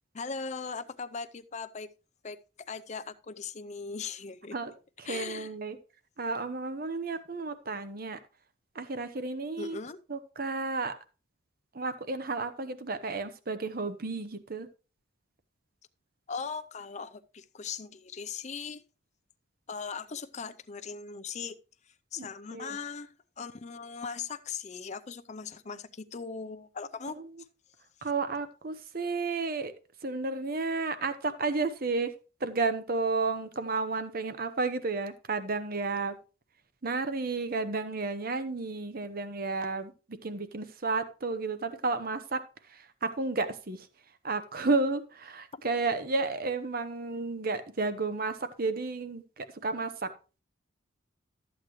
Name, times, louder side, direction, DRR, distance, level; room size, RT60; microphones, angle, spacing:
voice 1, 0.1-1.9 2.2-4.6 5.0-5.5 9.6-10.0 16.3-18.8 19.7-21.6 21.9-27.2 28.0-28.1 45.5-45.6, left 5 dB, 35° left, 0.5 m, -39 dB
voice 2, 5.0-5.8 6.2-8.2 8.7-9.8 10.1-10.9 11.7-14.7 22.2-22.8 27.1-27.3 28.0-29.7 30.0-32.1 32.4-36.2 36.8-42.4 42.7-43.9 44.2-50.1, right 3 dB, 50° right, 0.9 m, -32 dB
13.0 x 8.2 x 3.1 m
head